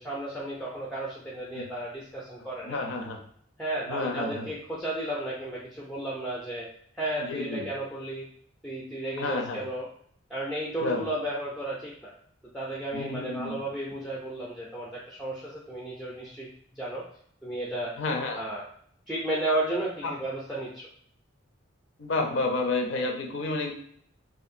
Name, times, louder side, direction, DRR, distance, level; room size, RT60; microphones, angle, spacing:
voice 1, 0.0-2.8 3.6-6.7 6.9-8.3 8.6-9.9 10.3-12.1 12.5-16.5 16.7-17.0 17.4-17.9 18.3-18.6 19.1-20.9, right 1 dB, ahead, -5 dB, 0.4 m, -33 dB
voice 2, 2.6-3.2 3.9-4.5 7.2-7.7 9.2-9.7 10.8-11.1 12.9-13.6 18.0-18.4 20.0-20.1 22.0-23.7, left 3 dB, 65° left, 3 dB, 0.5 m, -30 dB
2.7 x 2.5 x 2.5 m, 0.64 s
head